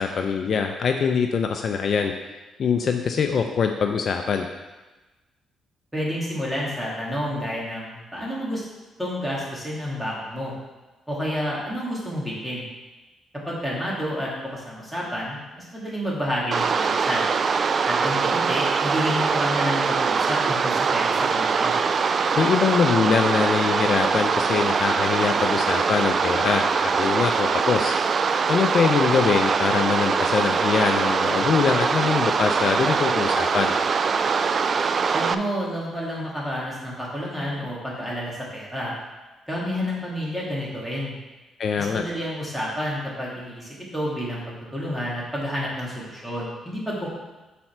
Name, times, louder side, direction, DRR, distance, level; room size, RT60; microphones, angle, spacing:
voice 1, 0.0-2.1 2.6-4.5 22.4-27.9 28.5-33.7 41.6-42.0, left 6 dB, 55° left, 5 dB, 0.6 m, -23 dB
voice 2, 5.9-8.6 9.0-10.5 11.1-12.6 13.5-17.3 17.8-21.7 35.1-38.9 39.5-41.1 41.8-47.1, equal, 5° right, -6 dB, 2.8 m, -29 dB
sound 1, 16.5-35.3, right 5 dB, 45° right, 0.4 m, -23 dB
7.0 x 4.4 x 6.0 m, 1.1 s
cardioid pair, 90°, 0 cm